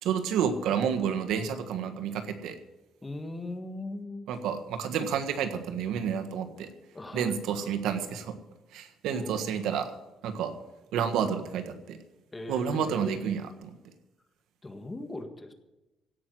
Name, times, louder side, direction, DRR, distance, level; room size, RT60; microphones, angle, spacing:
voice 1, 0.0-2.6 4.3-6.7 7.1-8.3 8.7-9.9 10.2-10.5 10.9-12.0 12.5-13.7, right 7 dB, 80° right, 7 dB, 1.5 m, -30 dB
voice 2, 3.0-4.2 6.9-7.4 9.1-9.7 12.3-13.4 14.6-15.5, left 2 dB, 15° left, 8 dB, 1.6 m, -40 dB
16.5 x 6.2 x 9.3 m, 1.0 s
cardioid pair, 110°, 0 cm